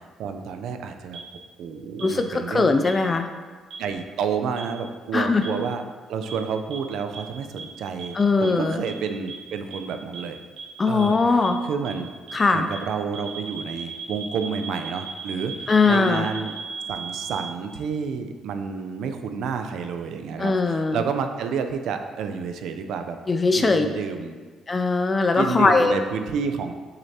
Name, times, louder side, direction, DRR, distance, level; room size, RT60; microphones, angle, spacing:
voice 1, 0.2-1.2 1.6-2.8 3.8-5.8 6.1-10.4 10.9-12.1 12.5-16.5 16.9-23.2 23.5-24.4 25.4-26.7, right 6 dB, 75° right, 7 dB, 0.5 m, -30 dB
sound 1, 1.1-1.2 2.0-2.1 2.8-2.9 3.7-3.8 4.6-4.7 5.4-5.5 6.3-6.4 6.7-6.8 7.1-7.2 7.6-7.7 8.0-8.1 8.4-8.5 8.8-8.9 9.3-9.4 9.7-9.8 10.1-10.2 10.6-10.7 11.0-11.1 11.4-11.5 11.8-11.9 12.3-12.4 12.7-12.8 13.1-17.5, right 5 dB, 50° right, 1.7 m, -35 dB
voice 2, 2.0-3.3 5.1-5.4 8.1-8.8 10.8-11.6 12.3-12.7 15.7-16.3 20.4-21.0 23.3-23.9 24.7-26.0, left 3 dB, 25° left, 6 dB, 0.3 m, -20 dB
7.2 x 6.7 x 2.8 m, 1.5 s
cardioid pair, 135°, 0 cm